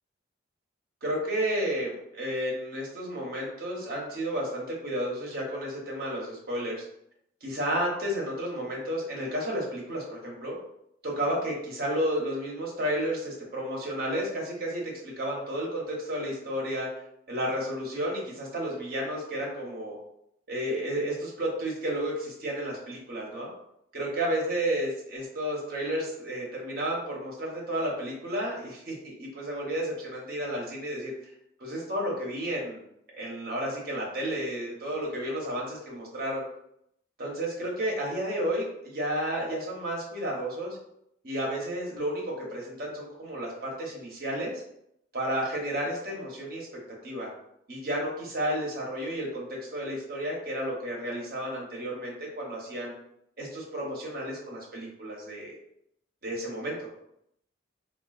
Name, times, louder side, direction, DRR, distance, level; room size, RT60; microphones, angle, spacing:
voice 1, 1.0-6.8 7.4-10.5 11.0-16.9 17.3-20.0 20.5-23.5 23.9-31.1 31.6-32.8 33.1-36.4 37.2-40.8 41.2-44.5 45.1-46.7 47.0-47.3 47.7-52.9 53.4-55.5 56.2-56.9, equal, 50° right, -3 dB, 0.8 m, -32 dB
3.7 x 2.3 x 2.3 m, 0.76 s
head